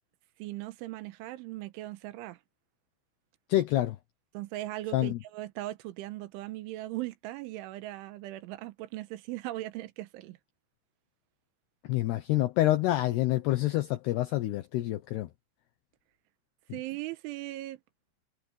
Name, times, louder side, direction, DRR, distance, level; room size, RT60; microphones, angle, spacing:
voice 1, 0.4-2.4 4.4-10.4 16.7-17.8, right 16 dB, 90° right, 3.4 m, -39 dB
voice 2, 3.5-4.0 4.9-5.2 11.8-15.3 16.7-16.8, left 15 dB, 70° left, 2.8 m, -27 dB
omnidirectional pair, 5.5 m